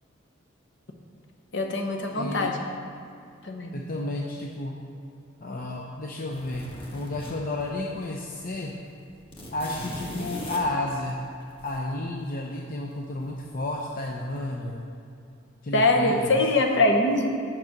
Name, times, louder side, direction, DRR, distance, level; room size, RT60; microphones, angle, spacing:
voice 1, 1.5-2.5 3.4-3.8 15.7-17.3, left 2 dB, 65° left, 3 dB, 1.0 m, -23 dB
voice 2, 2.1-2.5 3.7-4.8 5.4-8.7 9.5-11.2 11.6-14.9 15.6-16.4, left 2 dB, 45° left, -1 dB, 0.7 m, -32 dB
sound 1, 6.3-8.0 8.3-8.5 8.7-11.8 13.2-13.8 14.1-14.4, equal, 25° left, 1.3 m, -39 dB
9.3 x 6.1 x 5.8 m, 2.4 s
head